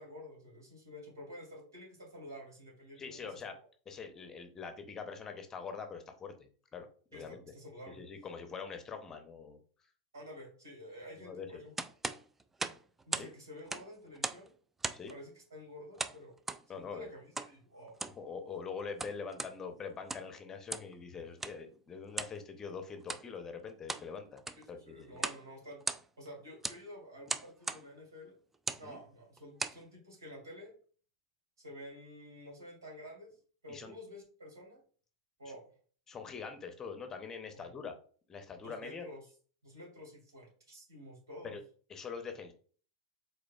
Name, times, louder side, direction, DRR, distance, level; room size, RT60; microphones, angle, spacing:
voice 1, 0.0-3.3 7.1-8.0 10.1-11.7 13.1-14.5 15.1-16.3 16.7-18.0 24.7-28.3 28.8-30.7 31.6-33.3 33.6-34.8 35.4-35.7 37.5-37.7 38.6-39.3 39.6-41.6, left 1 dB, 80° right, 0 dB, 2.3 m, -50 dB
voice 2, 3.0-3.5 3.9-7.4 7.9-9.6 11.2-11.6 13.2-13.3 14.9-15.1 16.7-17.1 18.0-24.4 24.7-25.2 28.8-29.0 33.7-33.9 36.1-37.9 38.3-39.1 41.4-41.6 41.9-42.5, left 5 dB, 20° left, 7 dB, 0.8 m, -44 dB
sound 1, 11.8-13.3 13.6-14.5 14.8-15.2 16.0-16.6 17.4-17.5 17.9-18.2 18.8-19.5 20.0-20.3 20.7-20.9 21.4-21.6 22.1-22.4 23.0-23.3 23.7-24.1 24.4-24.7 25.2-25.4 25.7-26.3 26.6-26.8 27.3-27.8 28.5-28.9 29.4-29.8, right 3 dB, 10° right, 0.3 m, -38 dB
5.0 x 3.9 x 2.4 m, 0.42 s
figure-of-eight pair, 90°, 2 cm